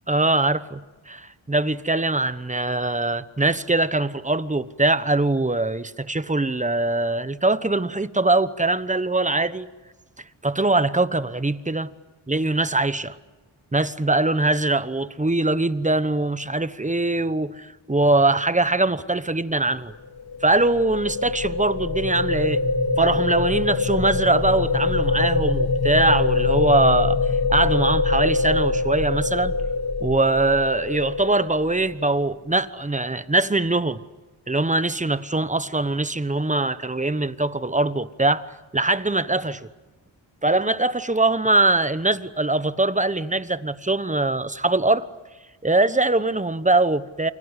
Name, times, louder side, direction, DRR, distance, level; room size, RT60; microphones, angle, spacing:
voice 1, 0.1-0.8 1.1-9.7 10.4-11.9 12.3-13.2 13.7-19.9 20.4-22.6 23.0-29.5 30.0-34.0 34.5-39.7 40.4-45.1 45.6-47.3, right 2 dB, 15° right, 1.1 m, -22 dB
sound 1, 20.0-32.2, left 4 dB, 50° left, 2.6 m, -24 dB
29.0 x 23.5 x 8.3 m
cardioid pair, 75°, 48 cm